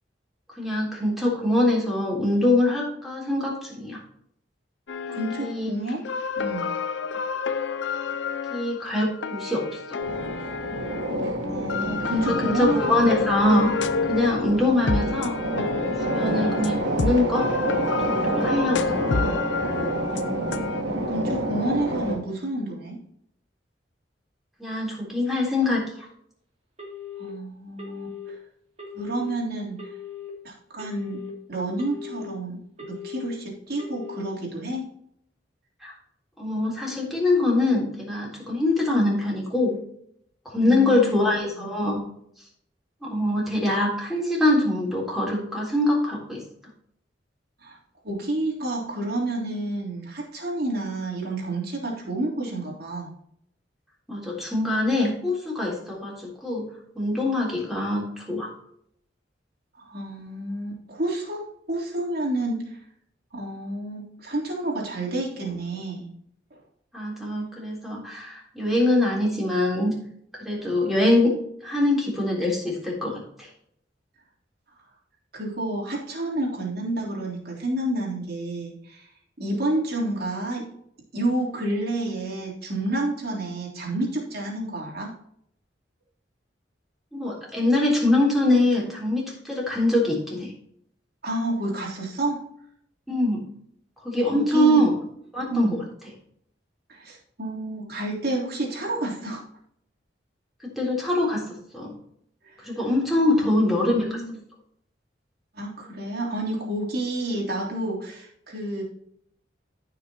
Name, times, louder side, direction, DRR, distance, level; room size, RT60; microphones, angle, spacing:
voice 1, 0.5-4.0 5.1-5.7 8.5-10.0 12.3-13.7 14.1-15.4 16.1-17.5 18.1-18.8 24.6-26.1 35.8-35.9 36.4-39.8 40.5-42.0 43.0-46.4 54.1-56.7 56.9-58.5 66.9-69.9 70.4-71.3 71.6-73.5 87.1-90.5 93.1-93.4 94.0-94.9 95.3-95.8 100.6-101.9 102.6-104.1, left 1 dB, ahead, -4 dB, 3.6 m, -23 dB
sound 1, 4.9-5.6 5.9-11.2 11.7-20.8, left 5 dB, 80° left, 0.6 m, -29 dB
voice 2, 5.1-6.1 6.4-6.7 11.4-13.4 20.1-23.0 27.2-28.4 28.9-29.9 30.4-34.9 40.6-41.7 47.6-47.8 48.0-53.1 59.8-62.8 63.3-66.1 66.5-66.6 75.3-79.1 79.4-80.8 81.1-85.1 91.2-92.5 94.3-94.9 95.5-95.8 96.9-99.5 102.4-102.9 103.3-104.4 105.5-108.8, right 1 dB, 60° right, -4 dB, 3.5 m, -30 dB
sound 2, 10.0-22.1, right 1 dB, 75° right, 2.7 m, -28 dB
Telephone, 26.8-27.3 27.8-28.3 28.8-29.3 29.8-30.3 30.8-31.3 31.8-32.3 32.8-33.3 33.8-34.3, left 7 dB, 35° right, 2.9 m, -39 dB
15.0 x 6.0 x 3.0 m, 0.70 s
head